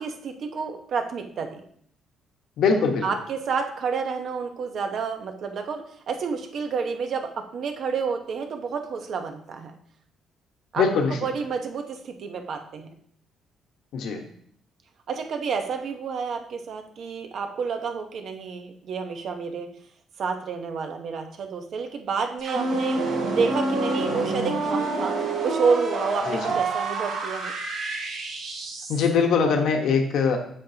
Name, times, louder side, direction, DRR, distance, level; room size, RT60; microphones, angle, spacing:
voice 1, 0.0-1.6 3.0-9.7 10.7-12.9 15.1-19.7 20.2-23.0 23.3-25.2 25.4-27.5, right 5 dB, 55° right, 5 dB, 0.9 m, -29 dB
voice 2, 2.6-3.1 10.8-11.3 13.9-14.2 26.2-26.6 28.9-30.4, left 5 dB, 70° left, 4 dB, 1.2 m, -22 dB
sound 1, 22.4-29.1, right 3 dB, 75° right, 2.1 m, -27 dB
7.8 x 7.4 x 2.8 m, 0.63 s
cardioid pair, 130°, 0 cm